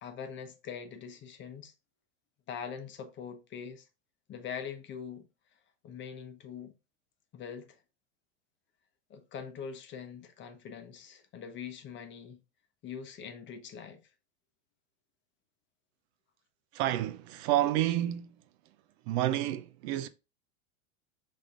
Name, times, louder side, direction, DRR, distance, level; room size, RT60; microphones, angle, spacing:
voice 1, 0.0-1.7 2.5-3.9 4.3-5.3 5.8-6.7 7.3-7.8 9.1-12.4 12.8-14.0, left 7 dB, 30° left, 0.8 m, -43 dB
voice 2, 16.7-18.3 19.1-20.1, right 13 dB, 55° right, 0.5 m, -29 dB
5.2 x 3.8 x 2.5 m
supercardioid pair, 115°, 39 cm